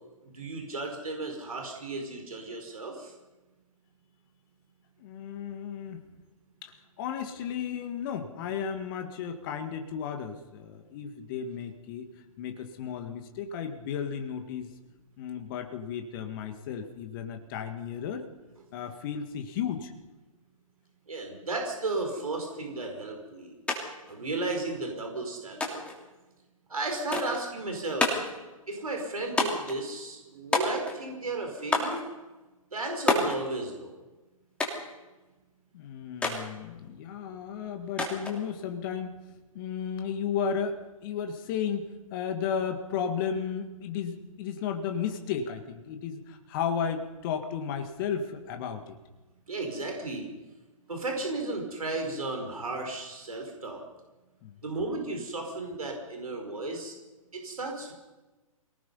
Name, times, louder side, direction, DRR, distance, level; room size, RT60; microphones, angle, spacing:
voice 1, 0.2-3.1 21.1-23.5 24.1-25.8 26.7-28.2 28.7-32.0 32.7-34.0 49.5-50.3 50.9-53.8 54.6-56.9 57.3-57.9, right 2 dB, 75° right, 2 dB, 5.1 m, -34 dB
voice 2, 5.0-6.0 6.6-12.1 12.4-14.7 15.2-18.3 18.7-19.9 35.7-39.2 39.5-49.0 54.4-54.5, left 7 dB, 35° left, 6 dB, 1.8 m, -34 dB
sound 1, 23.7-23.8 24.1-24.8 25.6-26.0 27.1-27.4 28.0-28.4 29.4-29.8 30.5-31.1 31.7-32.0 33.1-33.4 34.6-34.9 36.2-36.4 38.0-38.4, left 2 dB, 5° left, 3.2 m, -28 dB
25.5 x 19.0 x 5.5 m, 1.1 s
figure-of-eight pair, 130°, 18 cm